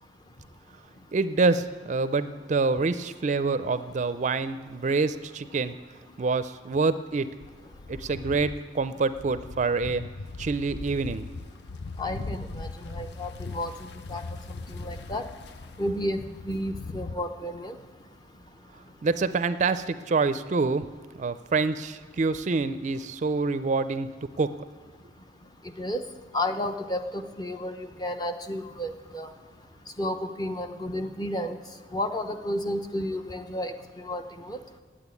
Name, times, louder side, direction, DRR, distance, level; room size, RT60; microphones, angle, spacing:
voice 1, 1.1-5.7 6.2-7.3 7.9-10.0 10.4-11.2 19.0-20.8 21.2-24.1 24.4-24.5, right 4 dB, 40° right, 13 dB, 0.4 m, -26 dB
sound 1, 7.4-17.1, left 3 dB, 65° left, 0.5 m, -40 dB
voice 2, 12.0-14.2 14.7-15.2 15.8-17.8 25.8-26.0 26.3-29.3 30.0-31.6 31.9-34.6, left 1 dB, 25° left, 7 dB, 0.7 m, -32 dB
8.9 x 8.7 x 9.5 m, 1.4 s
head